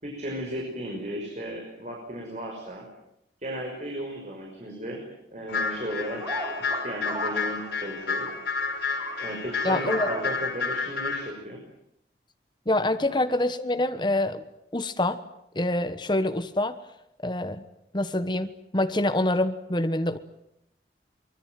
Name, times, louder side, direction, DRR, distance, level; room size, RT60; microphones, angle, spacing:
voice 1, 0.0-2.8 3.4-5.0 5.3-6.2 6.6-8.3 9.2-11.6, right 1 dB, 40° right, 0 dB, 5.6 m, -35 dB
sound 1, 5.5-11.3, left 4 dB, 80° left, 5.6 m, -30 dB
sound 2, 6.2-7.7 8.1-8.3 8.8-10.2, right 1 dB, 20° right, 6.3 m, -36 dB
voice 2, 9.6-10.1 12.7-14.4 14.7-15.2 15.5-16.7 17.2-17.6 17.9-20.2, left 1 dB, 25° left, 9 dB, 1.3 m, -26 dB
24.0 x 22.5 x 9.2 m, 0.78 s
head